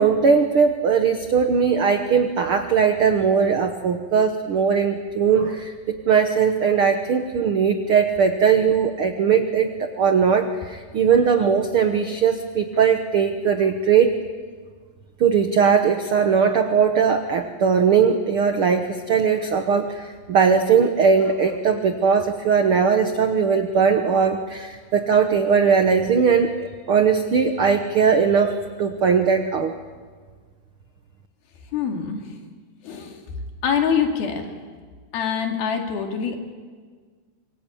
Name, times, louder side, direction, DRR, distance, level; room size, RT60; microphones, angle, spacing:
voice 1, 0.0-14.1 15.2-29.7, right 6 dB, 75° right, 7 dB, 1.2 m, -19 dB
voice 2, 31.7-32.3 32.8-33.2 33.6-34.5 35.1-36.4, left 7 dB, 85° left, 3 dB, 4.4 m, -24 dB
26.0 x 23.0 x 8.7 m, 1.5 s
omnidirectional pair, 4.2 m